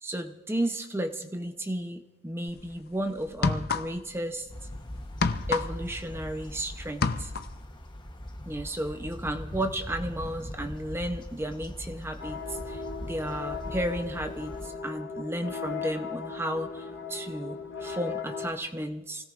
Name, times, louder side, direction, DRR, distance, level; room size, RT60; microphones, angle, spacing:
voice 1, 0.0-4.5 5.5-7.3 8.5-19.2, right 1 dB, 10° right, 5 dB, 0.7 m, -33 dB
sound 1, 2.5-2.7 3.3-4.2 4.5-6.6 6.9-7.6, left 4 dB, 50° left, 0.6 m, -29 dB
sound 2, 4.5-14.7, left 1 dB, 20° left, 1.0 m, -41 dB
sound 3, 12.2-18.6, left 5 dB, 75° left, 3.5 m, -37 dB
27.0 x 17.0 x 2.5 m, 1.1 s
head